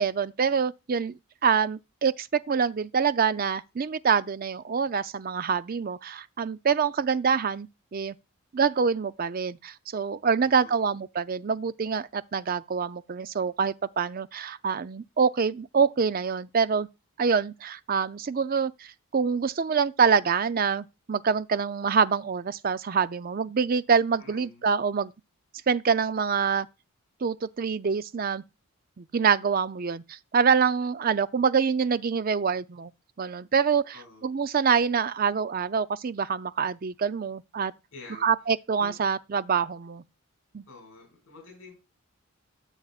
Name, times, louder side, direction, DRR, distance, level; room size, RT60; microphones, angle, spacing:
voice 1, 0.0-8.2 8.5-16.9 17.2-25.1 25.7-26.7 27.2-28.4 29.0-32.9 33.2-33.9 34.2-37.7 38.2-40.0 40.5-40.6, right 6 dB, 40° right, 0.4 m, -26 dB
voice 2, 10.4-11.0 24.2-24.7 33.9-34.3 37.9-38.3 38.8-39.0 40.7-41.7, left 3 dB, 60° left, 5.6 m, -48 dB
13.5 x 7.2 x 2.4 m
head